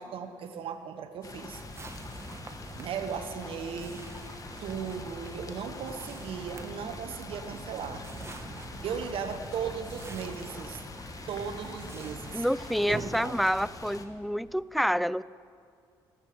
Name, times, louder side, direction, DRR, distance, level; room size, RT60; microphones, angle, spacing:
voice 1, 0.0-1.6 2.8-4.0 4.6-8.0 8.8-10.8 11.3-12.4 12.9-13.5, right 7 dB, 65° right, 7 dB, 1.0 m, -37 dB
sound 1, 1.2-14.1, left 3 dB, 35° left, 1.4 m, -44 dB
sound 2, 1.5-13.2, right 3 dB, 25° right, 1.4 m, -45 dB
Wind, 6.4-14.5, right 2 dB, 40° right, 4.8 m, -51 dB
voice 2, 12.3-15.2, equal, ahead, 20 dB, 0.4 m, -28 dB
16.5 x 13.5 x 5.0 m, 2.3 s
supercardioid pair, 60°, 10 cm